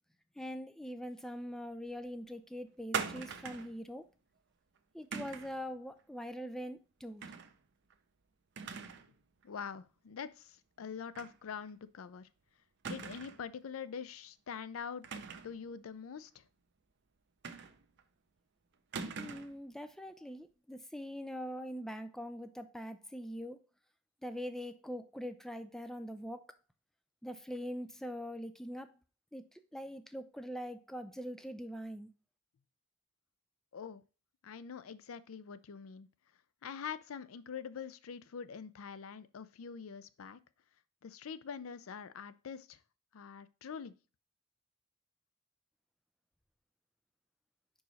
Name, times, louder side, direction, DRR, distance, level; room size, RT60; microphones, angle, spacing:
voice 1, 0.4-4.0 4.9-7.2 19.2-23.6 24.2-26.4 27.2-28.9 29.3-29.4 29.7-32.1, equal, ahead, 0.3 m, -43 dB
sound 1, 2.9-3.8 5.1-5.6 7.2-7.5 7.9-8.0 8.6-9.1 9.4-9.5 11.1-11.4 11.7-11.8 12.8-13.5 15.0-15.6 17.4-18.0 18.9-19.6, right 5 dB, 55° right, 0.6 m, -41 dB
voice 2, 9.4-12.3 12.9-15.1 15.4-16.4 33.7-34.0 34.4-36.1 36.6-40.4 41.0-42.8 43.1-43.9, left 6 dB, 80° left, 0.4 m, -44 dB
5.2 x 4.7 x 4.0 m
head